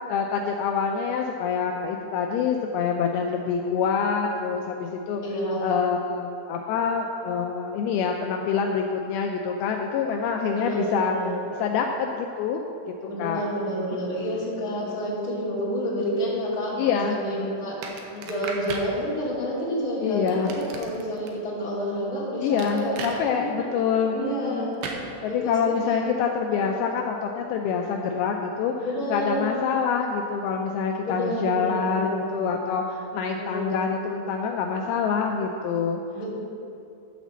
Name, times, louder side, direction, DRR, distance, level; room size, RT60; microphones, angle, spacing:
voice 1, 0.1-5.2 5.6-11.2 11.6-12.9 13.2-13.4 13.9-14.5 14.8-15.0 16.8-17.7 18.1-18.3 20.0-20.5 22.4-24.8 25.2-36.0, left 6 dB, 85° left, 2 dB, 2.2 m, -26 dB
voice 2, 5.2-5.7 10.5-11.4 13.1-17.8 18.2-24.9 25.2-26.2 26.5-26.7 28.8-29.6 31.0-32.5 33.3-33.8 36.1-36.3, equal, 25° left, -8 dB, 2.1 m, -29 dB
sound 1, 17.8-18.9 20.3-21.3 22.6-23.2 24.8-25.0, right 5 dB, 75° right, 2.6 m, -35 dB
12.5 x 4.1 x 7.1 m, 2.7 s
omnidirectional pair, 4.9 m